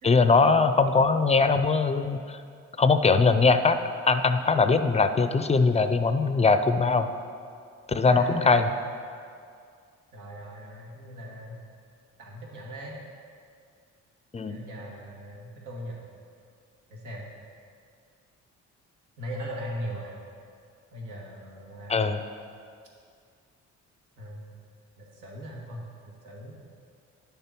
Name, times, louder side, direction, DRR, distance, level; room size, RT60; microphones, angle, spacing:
voice 1, 0.0-2.4 2.8-3.8 4.0-7.1 7.9-8.7 14.3-14.6 21.9-22.2, left 4 dB, 20° left, 9 dB, 0.4 m, -21 dB
voice 2, 7.9-8.8 10.1-11.6 12.2-13.0 14.5-16.0 16.9-17.2 19.2-20.1 20.9-22.1 24.2-24.5 25.0-26.6, equal, 85° right, -3 dB, 2.0 m, -39 dB
10.5 x 6.9 x 4.4 m, 2.3 s
cardioid pair, 90°, 30 cm